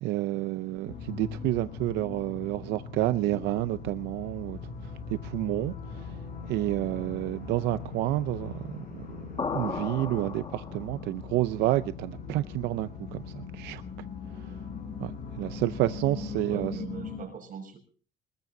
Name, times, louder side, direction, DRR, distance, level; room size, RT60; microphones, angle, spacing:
voice 1, 0.0-4.6 5.1-6.0 6.5-9.0 9.5-12.9 13.3-13.8 15.0-15.1 15.4-16.8, right 15 dB, 90° right, 0.6 m, -29 dB
sound 1, 0.9-17.2, left 5 dB, 50° left, 6.0 m, -40 dB
sound 2, 9.4-11.1, left 5 dB, 30° left, 1.8 m, -35 dB
voice 2, 16.0-17.8, right 6 dB, 55° right, 6.0 m, -41 dB
21.0 x 20.5 x 2.7 m
cardioid pair, 110°, 17 cm